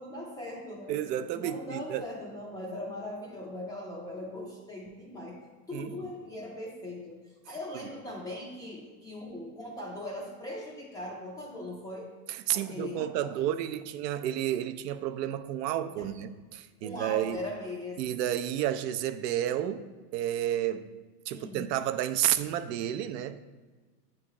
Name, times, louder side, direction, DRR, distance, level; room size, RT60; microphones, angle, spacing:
voice 1, 0.0-1.0 1.3-5.4 5.7-7.2 7.4-12.1 12.5-13.5 16.0-16.1 16.8-18.2 21.3-21.7, left 1 dB, 10° left, 0.3 m, -40 dB
voice 2, 0.9-2.1 5.7-5.9 12.3-17.4 18.0-19.9 20.1-20.9 21.3-23.4, right 11 dB, 85° right, 0.6 m, -31 dB
8.4 x 3.2 x 3.6 m
supercardioid pair, 135°, 48 cm